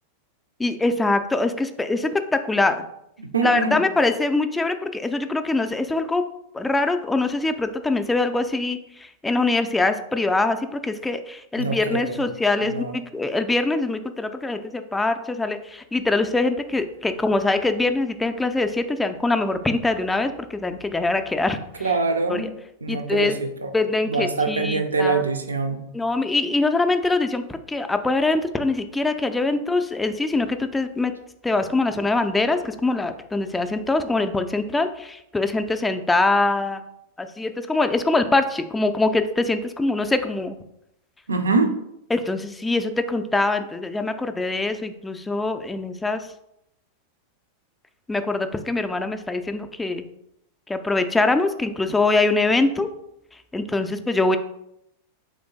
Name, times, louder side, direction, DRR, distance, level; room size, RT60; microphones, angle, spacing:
voice 1, 0.6-2.9 3.4-6.2 6.5-21.9 22.3-22.5 22.9-23.4 23.7-25.2 25.9-31.1 31.4-36.8 37.2-40.6 42.1-46.3 48.1-50.0 50.7-52.9 53.5-54.4, left 2 dB, 10° left, 8 dB, 0.3 m, -23 dB
voice 2, 3.2-3.8 11.6-12.3 12.6-12.9 21.8-22.5 22.8-23.7 24.1-25.8 41.3-41.7, right 4 dB, 75° right, 6 dB, 0.5 m, -24 dB
3.6 x 3.1 x 3.6 m, 0.80 s
figure-of-eight pair, 90°, 0 cm